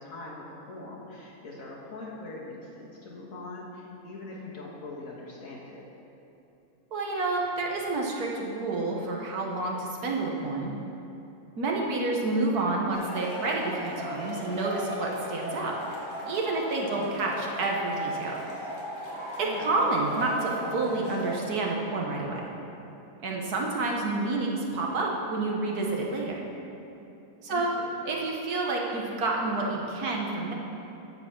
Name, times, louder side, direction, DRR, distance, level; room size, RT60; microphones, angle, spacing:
voice 1, 0.0-5.8 16.8-17.1 19.4-19.8 27.5-27.9, left 2 dB, 60° left, -5 dB, 2.2 m, -42 dB
voice 2, 6.9-10.7 11.6-15.8 16.3-18.3 19.4-22.4 23.2-26.4 27.4-27.7 28.1-30.5, right 2 dB, 85° right, -1 dB, 1.8 m, -29 dB
Male speech man speaking / Shout / Clapping, 12.9-21.4, equal, 35° left, 2.0 m, -37 dB
14.5 x 4.9 x 6.0 m, 2.9 s
omnidirectional pair, 1.6 m